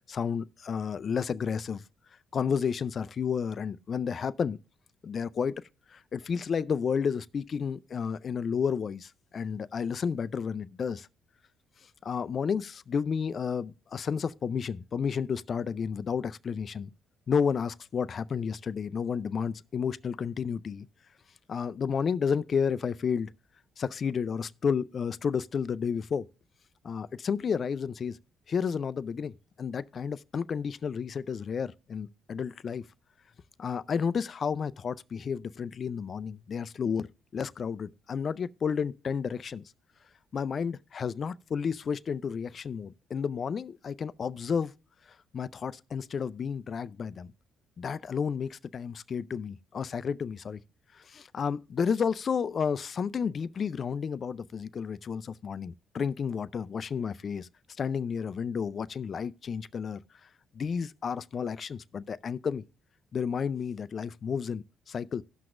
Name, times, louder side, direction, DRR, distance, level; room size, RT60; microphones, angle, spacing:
voice 1, 0.1-1.8 2.3-4.6 5.0-5.5 5.9-11.1 12.0-16.9 17.3-20.9 21.5-23.3 23.8-26.3 26.8-28.2 28.5-29.3 29.6-32.8 33.6-39.6 40.3-44.7 45.3-47.3 47.8-50.6 51.0-57.5 57.8-60.0 60.5-62.6 63.1-65.2, left 6 dB, 50° left, 0.4 m, -31 dB
17.0 x 6.0 x 2.5 m
cardioid pair, 85°, 0 cm